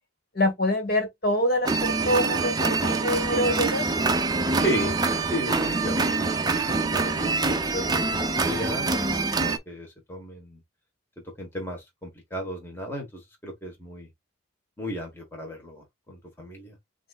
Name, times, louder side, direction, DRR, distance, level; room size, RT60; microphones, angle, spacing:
voice 1, 0.3-3.8, left 1 dB, 50° left, 1.8 m, -25 dB
sound 1, 1.7-9.6, right 3 dB, 20° right, 0.5 m, -25 dB
voice 2, 4.6-5.0 5.3-10.6 11.4-14.1 14.8-16.8, equal, 10° left, 1.2 m, -34 dB
7.3 x 2.6 x 2.4 m
head